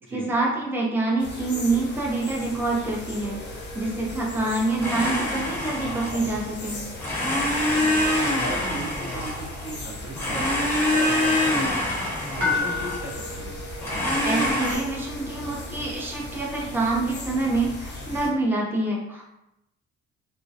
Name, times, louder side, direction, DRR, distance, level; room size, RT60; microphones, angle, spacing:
voice 1, 0.1-3.4 3.7-6.8 14.2-19.2, right 2 dB, 5° right, -3 dB, 0.5 m, -26 dB
sound 1, 1.2-18.3, left 2 dB, 35° left, 0.7 m, -38 dB
sound 2, 3.0-18.5, left 3 dB, 85° right, 0.8 m, -38 dB
Domestic sounds home sounds, 4.8-6.4 7.0-9.8 10.1-13.2 13.8-14.7, left 1 dB, 10° left, 1.0 m, -25 dB
voice 2, 7.7-11.9 12.4-13.5, right 1 dB, 45° right, -3 dB, 0.9 m, -37 dB
2.3 x 2.1 x 2.6 m, 0.85 s
cardioid pair, 90°, 30 cm